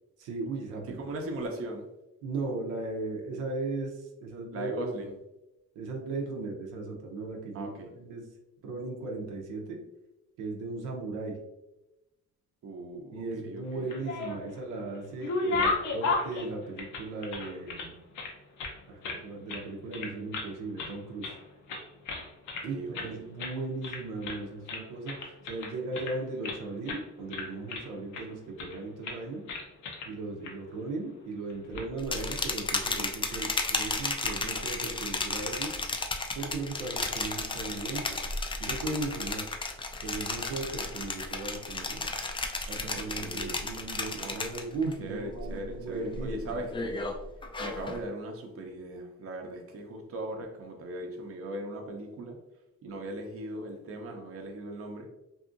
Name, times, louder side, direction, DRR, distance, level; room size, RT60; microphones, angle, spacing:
voice 1, 0.2-1.0 2.2-5.1 5.8-8.2 8.6-9.8 10.4-11.4 13.1-18.0 18.9-21.4 22.6-29.4 30.1-35.7 36.3-38.2 38.6-39.4 40.0-42.1 42.7-46.6, right 3 dB, 90° right, 0 dB, 0.6 m, -37 dB
voice 2, 0.9-1.9 4.5-5.1 7.5-7.9 12.6-13.9 22.5-23.2 42.9-43.6 44.1-44.5 45.0-47.0 47.6-52.4 52.8-55.1, right 1 dB, 50° right, 2 dB, 0.6 m, -39 dB
sound 1, 13.7-14.6 14.9-17.9 18.1-19.2 19.5-19.7 19.9-20.5 20.8-21.4 21.7-22.7 22.9-23.1 23.4-23.6 23.8-24.4 24.7-26.6 26.9-27.0 27.3-28.2 28.6-28.8 29.0-29.2 29.5-30.1 30.4-30.5 31.5-31.8, left 3 dB, 75° left, 0.6 m, -34 dB
sound 2, 32.0-44.9 45.3-45.7 46.1-48.0, left 3 dB, 20° left, 0.3 m, -33 dB
2.7 x 2.5 x 2.5 m, 0.95 s
cardioid pair, 90°, 30 cm